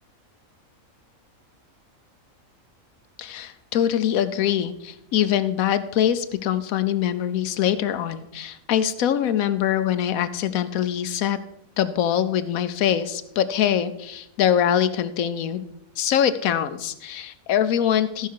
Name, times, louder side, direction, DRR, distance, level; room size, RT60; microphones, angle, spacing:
voice 1, 3.2-11.4 11.8-15.6 16.0-18.3, left 10 dB, 90° left, 12 dB, 1.1 m, -23 dB
14.0 x 5.6 x 4.6 m, 0.80 s
omnidirectional pair, 1.4 m